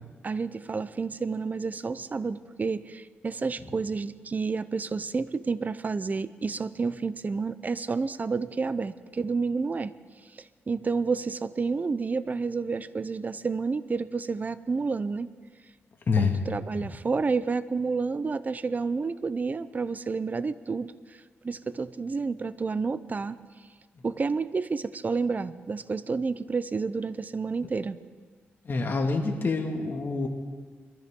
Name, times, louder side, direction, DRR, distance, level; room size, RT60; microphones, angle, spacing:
voice 1, 0.2-9.9 10.3-15.3 16.2-21.2 21.4-23.4 24.0-28.0, right 4 dB, 35° right, 15 dB, 0.6 m, -30 dB
voice 2, 28.7-30.3, left 4 dB, 50° left, 3 dB, 2.0 m, -26 dB
22.0 x 13.5 x 3.8 m, 1.5 s
cardioid pair, 70°, 5 cm